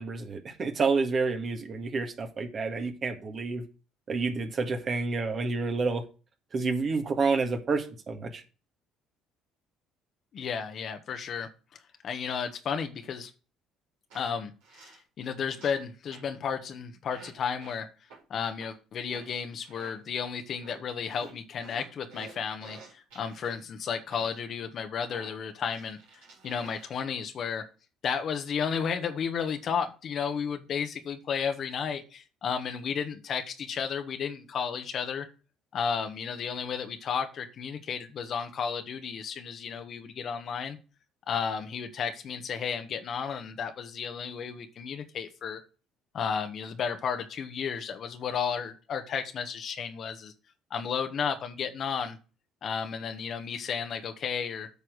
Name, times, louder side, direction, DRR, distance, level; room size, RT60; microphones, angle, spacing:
voice 1, 0.0-3.6 4.1-6.0 6.5-8.4, right 4 dB, 45° right, 5 dB, 1.8 m, -29 dB
voice 2, 10.3-11.5 12.0-13.3 14.1-17.9 18.3-26.0 26.4-27.6 28.0-35.3 35.7-40.8 41.3-45.6 46.1-50.3 50.7-52.2 52.6-54.7, left 6 dB, 55° left, 7 dB, 1.3 m, -33 dB
sound 1, 14.1-14.3 14.6-15.0 15.6-15.8 16.1-16.3 17.1-17.3 17.6-17.8 18.1-18.2 18.6-18.7 19.1-19.3 19.6-19.9 20.6-20.8 21.1-23.5 24.1-24.4 25.1-27.0, right 4 dB, 80° right, 4.3 m, -50 dB
8.6 x 4.7 x 6.2 m, 0.34 s
hypercardioid pair, 60°, 0 cm